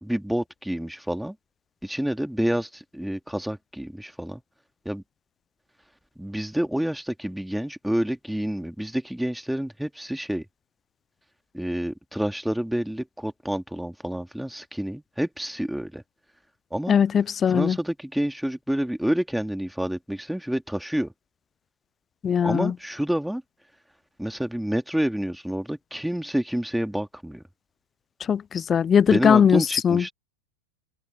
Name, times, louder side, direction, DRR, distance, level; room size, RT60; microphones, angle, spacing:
voice 1, 0.0-1.3 1.8-4.4 4.8-5.0 6.2-10.4 11.5-16.0 16.7-17.0 17.5-21.1 22.4-23.4 24.2-27.4 29.1-30.1, equal, ahead, 2.7 m, -28 dB
voice 2, 16.9-17.8 22.2-22.7 28.3-30.0, left 7 dB, 20° left, 0.3 m, -20 dB
open air
figure-of-eight pair, 90°, 0 cm